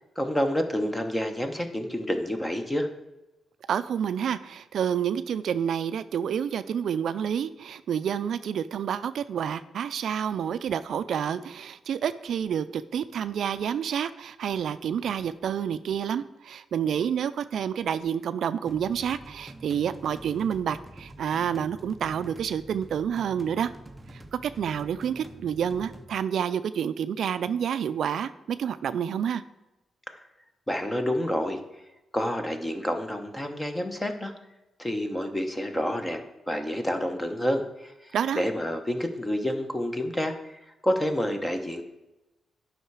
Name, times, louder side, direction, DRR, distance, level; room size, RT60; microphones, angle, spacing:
voice 1, 0.2-2.9 30.7-31.6 32.1-34.3 34.8-37.9 38.3-41.8, equal, 10° left, 6 dB, 0.9 m, -28 dB
voice 2, 3.7-23.7 24.1-29.4 38.1-38.5, right 8 dB, 65° right, 12 dB, 0.4 m, -29 dB
sound 1, 18.7-26.1, right 1 dB, 10° right, 0.5 m, -47 dB
11.0 x 5.7 x 4.7 m, 1.0 s
wide cardioid pair, 170°, 0 cm